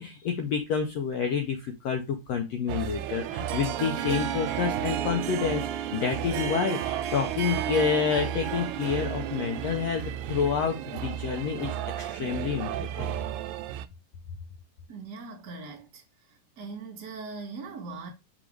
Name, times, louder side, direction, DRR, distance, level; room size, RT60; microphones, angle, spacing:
voice 1, 0.0-10.0 10.3-13.1, left 6 dB, 80° left, 1.5 m, -29 dB
sound 1, 2.7-13.9, right 11 dB, 90° right, 2.2 m, -34 dB
Harp, 3.5-11.9, right 11 dB, 75° right, 2.0 m, -35 dB
voice 2, 14.9-16.0 16.3-18.1, right 4 dB, 35° right, 2.0 m, -40 dB
6.3 x 4.8 x 3.2 m
omnidirectional pair, 3.9 m